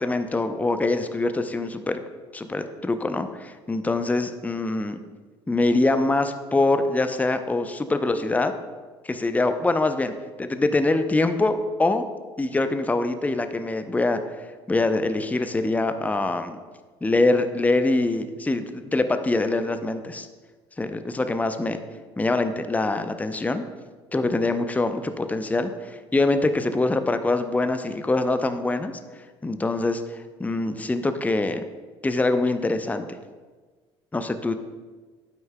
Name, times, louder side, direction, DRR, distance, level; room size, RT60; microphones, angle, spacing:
voice 1, 0.0-2.0 2.3-5.0 5.5-8.5 9.0-10.1 10.4-12.1 12.4-14.2 14.7-16.6 17.0-20.3 20.8-21.8 22.2-23.6 24.1-28.9 29.4-31.6 32.0-33.2 34.1-34.6, left 2 dB, 10° left, 9 dB, 0.5 m, -24 dB
8.9 x 8.8 x 2.2 m, 1.4 s
hypercardioid pair, 60°, 14 cm